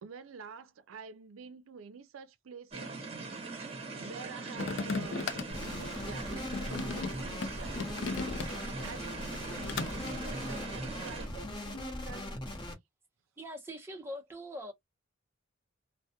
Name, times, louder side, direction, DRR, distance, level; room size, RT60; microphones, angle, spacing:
voice 1, 0.0-3.6 4.0-5.3 5.6-12.3, right 5 dB, 85° right, 0.4 m, -49 dB
sound 1, 2.7-11.3, right 3 dB, 30° right, 1.0 m, -41 dB
sound 2, 4.5-8.9 9.2-10.1, left 4 dB, 60° left, 0.4 m, -37 dB
sound 3, 5.5-12.7, left 1 dB, 25° left, 0.8 m, -40 dB
voice 2, 13.4-14.7, equal, 10° right, 0.6 m, -42 dB
2.2 x 2.1 x 2.7 m
head